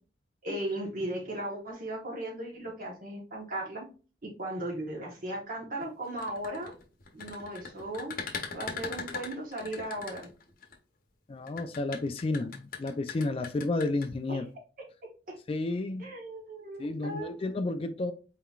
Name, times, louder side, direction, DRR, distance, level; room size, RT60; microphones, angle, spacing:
voice 1, 0.4-3.9 4.2-6.7 7.1-8.2 8.5-10.3 14.3-14.4 15.3-15.4 16.0-17.5, right 1 dB, 45° right, -1 dB, 1.0 m, -37 dB
sound 1, 6.1-10.7 11.5-14.1, left 5 dB, 50° left, 0.8 m, -39 dB
voice 2, 11.3-14.4 15.5-16.1 16.8-18.1, left 2 dB, 30° left, 8 dB, 0.3 m, -31 dB
4.2 x 3.8 x 2.3 m, 0.35 s
head